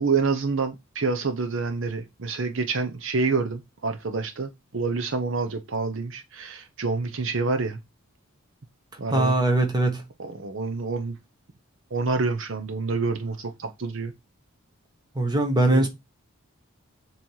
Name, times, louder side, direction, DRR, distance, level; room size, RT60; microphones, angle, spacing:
voice 1, 0.0-7.8 9.0-9.4 10.2-11.2 11.9-14.1 15.7-15.9, right 4 dB, 60° right, 0.7 m, -27 dB
voice 2, 9.1-10.0 15.1-15.9, right 2 dB, 20° right, 1.3 m, -21 dB
7.4 x 3.1 x 5.4 m
head